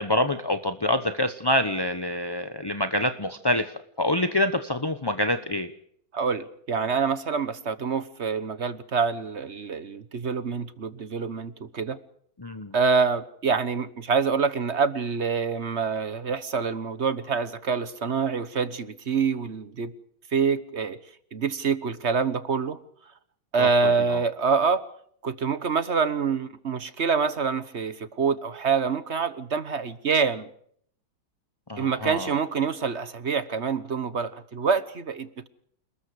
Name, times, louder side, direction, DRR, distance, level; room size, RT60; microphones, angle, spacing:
voice 1, 0.0-3.7 4.0-5.7 12.4-12.7 23.6-24.2 31.7-32.3, left 1 dB, 20° left, 8 dB, 0.6 m, -26 dB
voice 2, 6.1-12.0 12.7-19.9 20.3-21.0 21.3-22.8 23.5-24.8 25.2-30.5 31.8-35.5, right 5 dB, 40° right, 14 dB, 1.2 m, -26 dB
28.5 x 20.5 x 4.9 m, 0.65 s
omnidirectional pair, 2.1 m